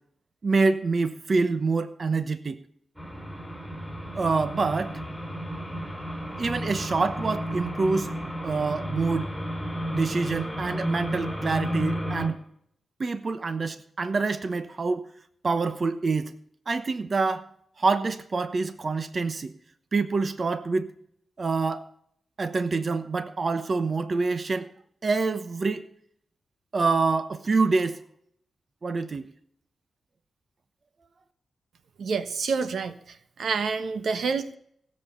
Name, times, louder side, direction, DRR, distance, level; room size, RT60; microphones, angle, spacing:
voice 1, 0.4-2.6 4.1-5.0 6.4-8.1 8.4-9.3 9.9-12.4 13.0-15.1 15.4-16.3 16.7-17.4 17.8-19.5 19.9-20.9 21.4-21.9 22.4-24.7 25.0-25.9 26.7-28.0 28.8-29.3, right 4 dB, 45° right, 12 dB, 0.9 m, -26 dB
sound 1, 3.0-12.3, equal, 5° right, 5.1 m, -32 dB
voice 2, 32.0-33.0 33.4-34.5, right 5 dB, 75° right, 12 dB, 1.1 m, -27 dB
17.0 x 7.5 x 6.9 m, 0.66 s
cardioid pair, 90°, 0 cm